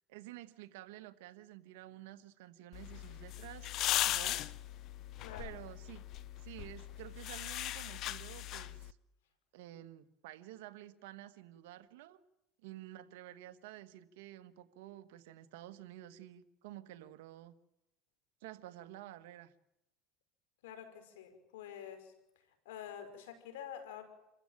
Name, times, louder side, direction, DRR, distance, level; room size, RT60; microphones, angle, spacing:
voice 1, 0.1-3.7 4.0-4.5 5.4-6.0 6.4-9.0 9.5-12.2 12.6-17.5 18.4-19.5, right 14 dB, 85° right, 11 dB, 1.4 m, -51 dB
sound 1, 2.7-8.9, left 14 dB, 55° left, 0.9 m, -38 dB
voice 2, 5.2-5.5 20.6-22.1 22.7-24.0, left 9 dB, 90° left, 7 dB, 5.2 m, -47 dB
27.0 x 15.0 x 9.0 m, 0.89 s
supercardioid pair, 110°, 0 cm